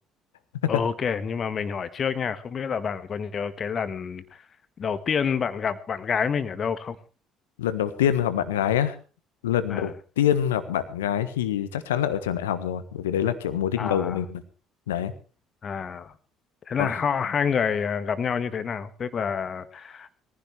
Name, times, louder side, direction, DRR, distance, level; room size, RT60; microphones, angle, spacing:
voice 1, 0.7-4.2 4.8-7.0 9.7-9.9 13.8-14.2 15.6-16.1 16.7-20.1, left 6 dB, 40° left, 12 dB, 1.6 m, -28 dB
voice 2, 7.6-9.0 9.4-9.9 10.2-14.4 14.9-15.1 16.8-16.9, left 10 dB, 75° left, 12 dB, 1.3 m, -25 dB
22.0 x 15.5 x 3.3 m, 0.35 s
figure-of-eight pair, 50°, 0 cm